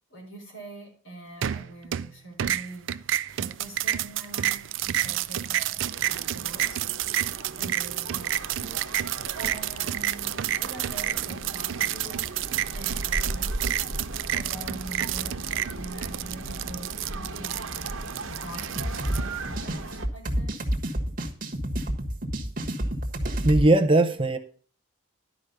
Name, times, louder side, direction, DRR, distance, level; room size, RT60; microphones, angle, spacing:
voice 1, 0.1-2.9 3.3-6.8 7.5-8.9 9.3-12.3 12.7-13.5 14.3-17.9 18.3-20.7, right 2 dB, 70° left, 0 dB, 4.6 m, -44 dB
sound 1, 1.4-2.1 2.4-19.2, right 11 dB, 70° right, 0.4 m, -29 dB
sound 2, 5.9-20.1, right 2 dB, 85° right, 1.2 m, -37 dB
sound 3, 18.8-23.7, equal, 40° right, 1.4 m, -29 dB
voice 2, 23.4-24.4, right 2 dB, 25° right, 7 dB, 0.6 m, -19 dB
11.5 x 5.1 x 6.6 m, 0.43 s
head